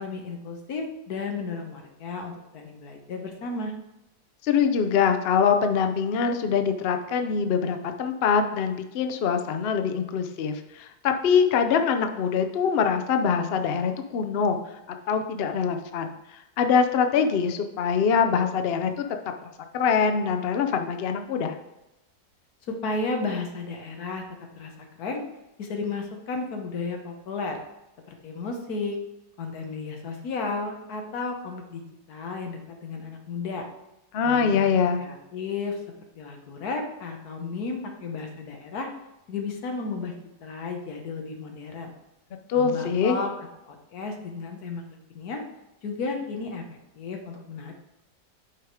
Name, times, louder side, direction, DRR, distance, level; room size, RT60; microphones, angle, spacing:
voice 1, 0.0-3.7 22.7-24.2 24.5-24.7 25.0-25.2 25.6-27.6 28.1-29.0 29.4-31.8 32.1-33.7 34.2-34.7 35.0-35.8 36.2-38.9 39.3-40.1 40.4-41.9 42.5-44.9 45.1-45.4 45.8-47.7, left 3 dB, 65° left, 3 dB, 1.5 m, -33 dB
voice 2, 4.4-14.6 14.9-16.1 16.6-19.0 19.7-21.5 34.1-35.1 42.5-43.2, left 6 dB, 90° left, 6 dB, 0.5 m, -24 dB
6.1 x 4.8 x 4.7 m, 0.93 s
omnidirectional pair, 1.8 m